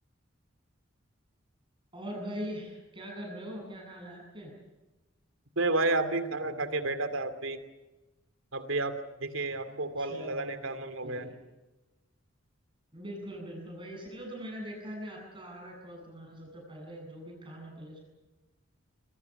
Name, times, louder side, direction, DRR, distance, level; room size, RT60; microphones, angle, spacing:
voice 1, 1.9-4.5 9.7-10.6 11.0-11.3 12.9-18.0, equal, 25° right, 0 dB, 8.0 m, -42 dB
voice 2, 5.6-7.6 8.5-11.3, right 2 dB, 75° right, 10 dB, 2.6 m, -31 dB
26.0 x 23.5 x 7.1 m, 1.1 s
head